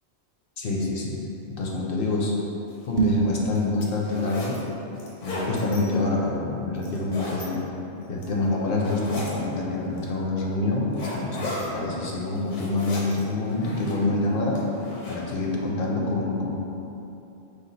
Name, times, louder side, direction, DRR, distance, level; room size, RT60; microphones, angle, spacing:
voice 1, 0.6-1.2 1.5-2.3 2.8-4.6 5.2-7.6 8.1-14.6 15.1-16.5, left 2 dB, 60° left, -2 dB, 0.7 m, -26 dB
sound 1, 2.7-2.8 3.4-4.6 5.0-5.8 6.8-7.4 8.0-8.4 8.8-9.4 10.0-10.1 10.9-11.7 12.2-13.2 13.5-14.1 14.5-15.2, left 1 dB, 80° left, 1.2 m, -35 dB
sound 2, 2.9-3.4, right 7 dB, 50° right, 0.4 m, -23 dB
4.9 x 2.3 x 3.9 m, 2.9 s
omnidirectional pair, 1.3 m